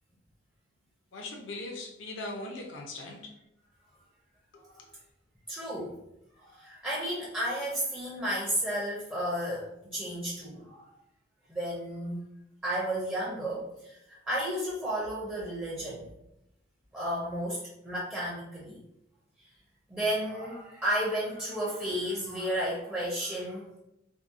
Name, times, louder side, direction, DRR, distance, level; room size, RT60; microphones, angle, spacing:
voice 1, 1.1-3.3 4.5-4.9, left 2 dB, 70° left, 2 dB, 0.5 m, -40 dB
voice 2, 5.5-6.0 6.4-10.9 11.5-12.2 12.6-16.0 16.9-18.8 19.9-23.8, equal, 10° right, -7 dB, 0.4 m, -33 dB
2.7 x 2.0 x 2.5 m, 0.85 s
head